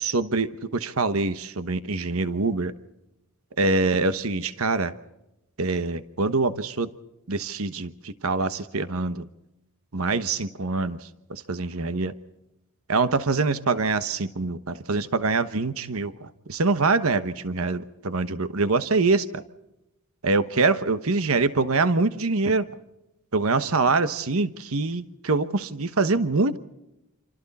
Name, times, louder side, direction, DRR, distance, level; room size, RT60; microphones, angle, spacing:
voice 1, 0.0-2.7 3.6-4.9 5.6-6.9 7.3-9.3 9.9-12.1 12.9-19.4 20.2-22.7 23.3-26.6, right 3 dB, 70° right, 12 dB, 1.1 m, -24 dB
27.5 x 26.5 x 4.2 m, 0.90 s
head